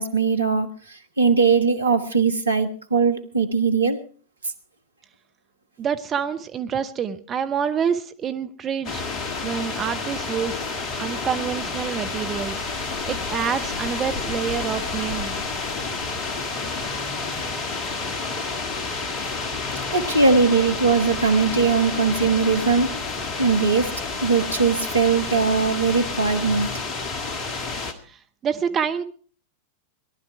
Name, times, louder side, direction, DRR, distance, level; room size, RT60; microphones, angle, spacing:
voice 1, 0.0-4.0 19.9-22.9 23.4-26.7, right 4 dB, 75° right, 8 dB, 1.3 m, -20 dB
voice 2, 5.8-9.0 9.4-10.6 11.0-15.4 28.0-29.0, right 7 dB, 25° right, 9 dB, 0.7 m, -27 dB
sound 1, 8.8-27.9, left 4 dB, 35° left, 1.7 m, -29 dB
18.0 x 12.0 x 4.7 m, 0.43 s
figure-of-eight pair, 90°, 0 cm